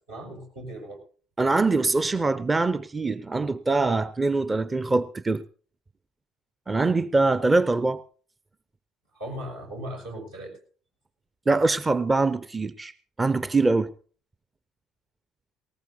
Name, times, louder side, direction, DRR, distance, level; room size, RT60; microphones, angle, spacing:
voice 1, 0.1-1.0 9.1-10.5, right 1 dB, 75° right, 6.0 m, -37 dB
voice 2, 1.4-5.4 6.7-8.0 11.5-12.9 13.2-13.9, right 3 dB, 20° right, 0.6 m, -23 dB
19.0 x 18.5 x 2.8 m
figure-of-eight pair, 55°, 0 cm